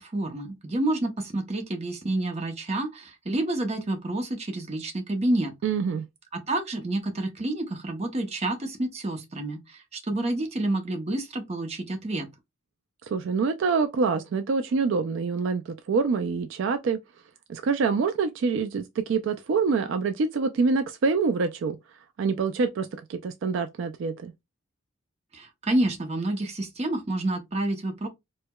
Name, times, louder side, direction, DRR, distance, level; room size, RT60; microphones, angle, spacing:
voice 1, 0.0-5.5 6.3-12.3 25.3-28.1, right 1 dB, 30° right, 0.6 m, -29 dB
voice 2, 5.6-6.1 13.1-17.0 17.5-21.8 22.2-24.3, right 4 dB, 65° right, 0.3 m, -26 dB
4.5 x 2.1 x 2.2 m
head